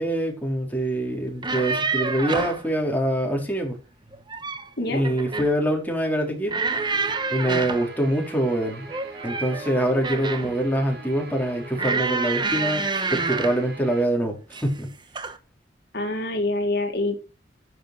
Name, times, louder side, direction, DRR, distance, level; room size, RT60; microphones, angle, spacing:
voice 1, 0.0-3.8 4.9-6.5 7.3-8.9 9.2-12.9 13.1-14.9, right 1 dB, 10° left, 4.0 m, -24 dB
sound 1, 1.3-2.6 4.1-4.7 5.0-5.6 6.5-7.9 8.9-10.6 11.8-13.6 14.5-14.8 15.2-15.4, right 4 dB, 25° right, 1.2 m, -28 dB
Guitar, 6.7-14.0, right 3 dB, 70° right, 5.5 m, -42 dB
voice 2, 15.9-17.2, left 2 dB, 65° left, 2.2 m, -25 dB
10.0 x 8.0 x 6.0 m
head